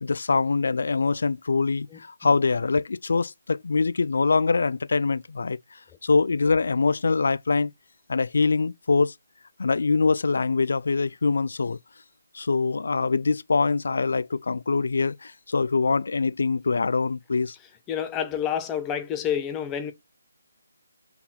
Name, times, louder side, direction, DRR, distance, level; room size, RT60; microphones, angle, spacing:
voice 1, 0.0-5.6 6.0-7.7 8.1-9.1 9.6-11.8 12.3-17.5, left 4 dB, 70° left, 0.4 m, -24 dB
voice 2, 17.9-19.9, left 9 dB, 15° left, 0.7 m, -28 dB
5.6 x 4.1 x 4.0 m
figure-of-eight pair, 155°, 0 cm